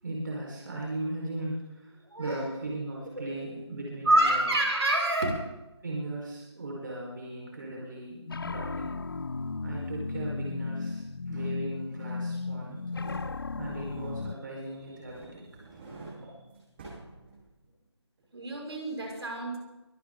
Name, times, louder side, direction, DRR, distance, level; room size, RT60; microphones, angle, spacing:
voice 1, 0.0-4.5 5.8-9.0 9.6-12.8 13.6-15.8 16.2-16.4, right 1 dB, 45° right, -3 dB, 4.6 m, -38 dB
voice 2, 4.1-5.3 18.3-19.6, right 1 dB, 65° right, 0 dB, 5.5 m, -26 dB
sound 1, 8.3-14.4, left 3 dB, 50° left, 0.7 m, -35 dB
sound 2, 12.7-14.4 14.7-17.8 18.2-18.3, right 2 dB, 25° right, 7.4 m, -49 dB
23.5 x 14.0 x 3.8 m, 0.99 s
figure-of-eight pair, 165°, 15 cm